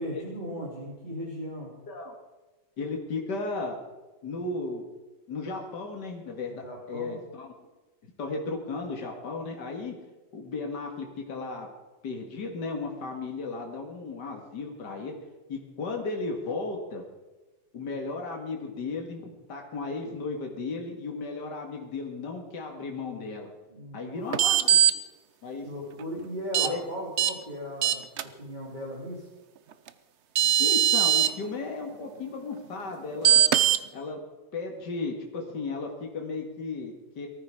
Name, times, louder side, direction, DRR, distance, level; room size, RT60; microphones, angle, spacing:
voice 1, 0.0-1.7 6.6-7.2 23.7-24.2 25.6-29.3, equal, 25° right, -4 dB, 3.1 m, -37 dB
voice 2, 2.8-3.8 4.2-4.9 5.3-7.5 8.2-10.0 10.3-11.7 12.0-15.2 15.5-17.0 17.7-23.5 23.9-24.8 25.4-25.7 26.6-26.8 30.6-33.5 33.9-34.2 34.5-37.3, left 3 dB, 65° left, 2 dB, 2.6 m, -35 dB
sound 1, 24.3-24.9 26.5-26.7 27.2-27.3 27.8-28.2 29.9-30.0 30.3-31.3 33.2-33.8, right 10 dB, 65° right, 0.7 m, -20 dB
19.0 x 14.0 x 4.9 m, 1.2 s
omnidirectional pair, 2.0 m